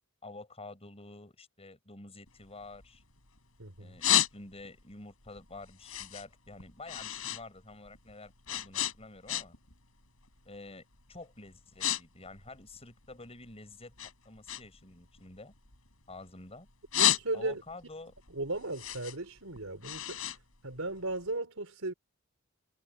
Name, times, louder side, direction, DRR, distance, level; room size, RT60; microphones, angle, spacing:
voice 1, 0.2-3.0 3.8-9.6 10.4-13.9 14.2-15.5 16.1-16.7 17.3-18.1, left 2 dB, 30° left, 6.5 m, -49 dB
sound 1, 2.3-3.4 3.8-4.8 5.2-7.4 7.7-9.7 10.0-10.4 11.0-11.2 11.5-12.0 12.3-13.5 14.0-16.3 16.7-17.7 18.1-21.3, left 11 dB, 85° left, 4.8 m, -32 dB
voice 2, 3.6-3.9 16.9-17.6 18.3-20.2 20.6-21.9, right 2 dB, 85° right, 4.3 m, -36 dB
head